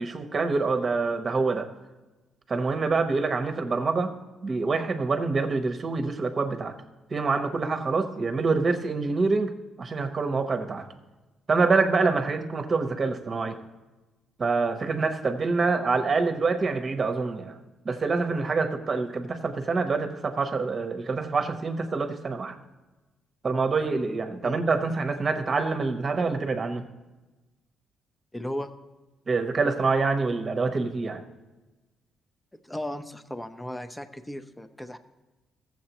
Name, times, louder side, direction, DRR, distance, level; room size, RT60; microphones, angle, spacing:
voice 1, 0.0-1.7 2.5-4.1 4.4-6.7 7.1-9.5 9.8-10.9 11.5-13.6 14.4-17.6 17.8-22.6 23.4-26.8 29.3-31.2, right 4 dB, 40° right, 7 dB, 0.9 m, -26 dB
voice 2, 28.3-28.7 32.6-35.0, left 1 dB, 10° left, 10 dB, 0.6 m, -35 dB
15.0 x 7.4 x 3.0 m, 1.1 s
cardioid pair, 90°, 0 cm